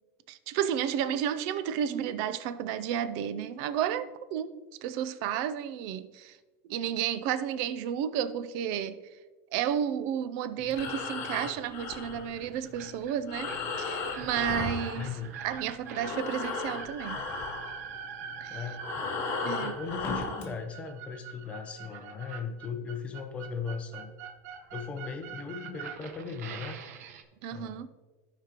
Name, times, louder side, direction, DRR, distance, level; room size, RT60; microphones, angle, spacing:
voice 1, 0.3-4.5 4.8-6.4 6.7-9.0 9.5-15.1 15.4-17.2 18.4-18.6 19.4-19.7 27.4-27.9, right 9 dB, 45° right, 0.4 m, -32 dB
Breathing, 10.6-15.6 15.8-20.5, left 4 dB, 30° left, 1.0 m, -36 dB
sound 1, 12.2-27.2, right 7 dB, 85° right, 0.8 m, -44 dB
voice 2, 14.9-15.4 18.5-18.9 19.4-24.1 24.7-26.8 27.5-27.9, left 5 dB, 15° left, 0.6 m, -38 dB
15.0 x 5.1 x 2.9 m
supercardioid pair, 175°, 8 cm